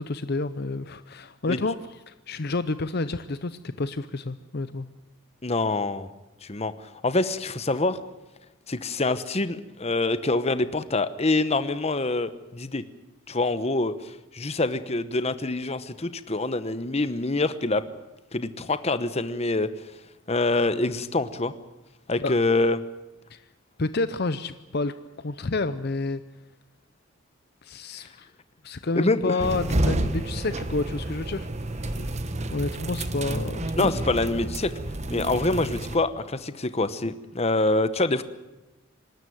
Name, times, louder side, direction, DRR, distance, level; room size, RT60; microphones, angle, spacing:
voice 1, 0.0-1.8 2.1-4.9 22.2-22.3 23.3-23.4 23.8-26.2 27.6-28.3 28.6-31.5 31.8-32.1 32.5-33.9, left 3 dB, 50° left, 12 dB, 0.7 m, -29 dB
voice 2, 5.4-6.1 6.5-6.7 7.0-8.0 8.7-12.8 13.3-13.9 14.3-17.8 18.3-19.7 20.3-21.5 22.1-22.8 29.0-29.4 31.9-32.1 33.8-34.7 35.1-38.2, left 2 dB, 30° left, 12 dB, 1.0 m, -25 dB
sound 1, 29.4-36.0, right 1 dB, 35° right, 1.2 m, -30 dB
26.0 x 13.0 x 9.3 m, 1.0 s
head